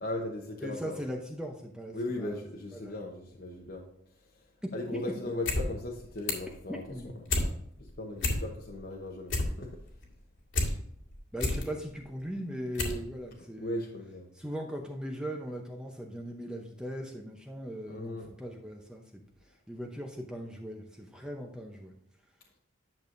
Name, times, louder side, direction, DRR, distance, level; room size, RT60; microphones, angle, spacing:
voice 1, 0.0-1.0 1.9-3.9 4.7-6.8 7.8-9.8 13.6-14.3 17.9-18.3, left 1 dB, 50° left, -1 dB, 1.0 m, -37 dB
voice 2, 0.6-2.4 2.7-3.1 4.6-5.0 5.3-5.4 6.7-7.2 11.3-13.9 14.3-21.9, equal, 5° right, 1 dB, 0.7 m, -39 dB
sound 1, 5.3-5.6 5.9-6.5 6.9-7.5 7.9-8.0 8.2-8.8 9.1-10.7 11.1-11.6 12.2-12.3 12.7-13.0 13.3-13.4, left 2 dB, 80° left, 2.0 m, -30 dB
10.5 x 7.0 x 2.6 m, 0.74 s
head